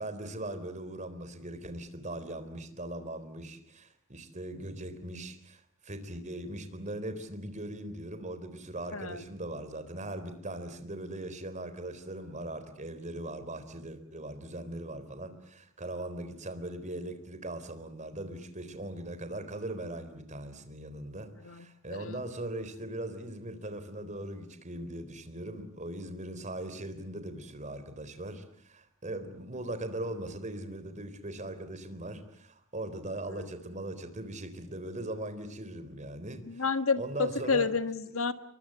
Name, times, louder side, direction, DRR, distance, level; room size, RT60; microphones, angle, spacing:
voice 1, 0.0-36.6 37.0-37.7, right 1 dB, 35° right, 10 dB, 3.9 m, -40 dB
voice 2, 8.9-9.2 21.4-22.2 33.3-33.5 36.4-38.3, left 5 dB, 80° left, 11 dB, 1.6 m, -31 dB
29.0 x 23.0 x 8.0 m, 0.62 s
head